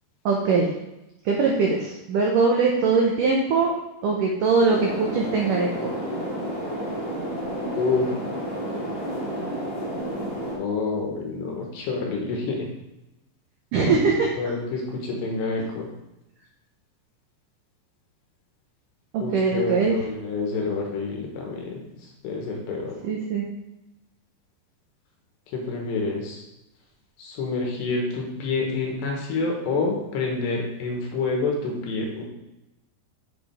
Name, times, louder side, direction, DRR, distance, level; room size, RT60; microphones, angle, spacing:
voice 1, 0.2-0.7 1.2-3.7 4.0-5.7 13.7-14.5 19.1-20.0 23.0-23.4, right 4 dB, 85° right, -1 dB, 1.8 m, -21 dB
sound 1, 4.7-10.6, equal, 25° left, 1.6 m, -31 dB
voice 2, 7.8-8.1 10.6-12.7 13.8-14.0 14.4-15.9 19.2-21.8 22.2-23.0 25.5-26.4 27.2-32.2, left 3 dB, 75° left, 0 dB, 3.4 m, -28 dB
8.0 x 6.7 x 3.5 m, 0.93 s
omnidirectional pair, 5.1 m